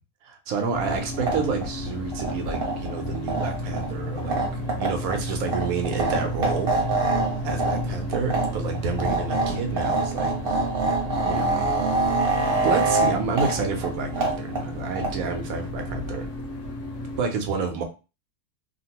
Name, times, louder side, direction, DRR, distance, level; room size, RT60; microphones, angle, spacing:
voice 1, 0.2-4.4 4.8-6.7 7.4-10.3 11.3-11.8 12.4-16.3 17.2-17.8, right 4 dB, 85° right, 5 dB, 1.1 m, -29 dB
sound 1, 0.7-17.3, equal, 60° left, 1.0 m, -33 dB
sound 2, 1.0-15.4, right 3 dB, 45° right, 1.0 m, -27 dB
2.9 x 2.5 x 2.8 m, 0.31 s
omnidirectional pair, 1.5 m